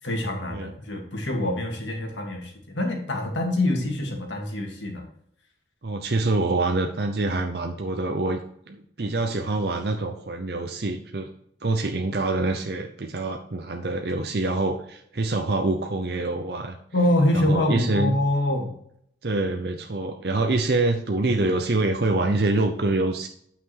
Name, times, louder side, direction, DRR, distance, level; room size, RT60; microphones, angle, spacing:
voice 1, 0.0-5.0 16.9-18.8, left 1 dB, 90° left, 1 dB, 2.5 m, -25 dB
voice 2, 5.8-8.4 8.7-11.3 11.6-16.8 17.3-18.2 19.2-23.3, right 2 dB, 60° right, 4 dB, 0.7 m, -25 dB
9.2 x 5.9 x 4.6 m, 0.69 s
head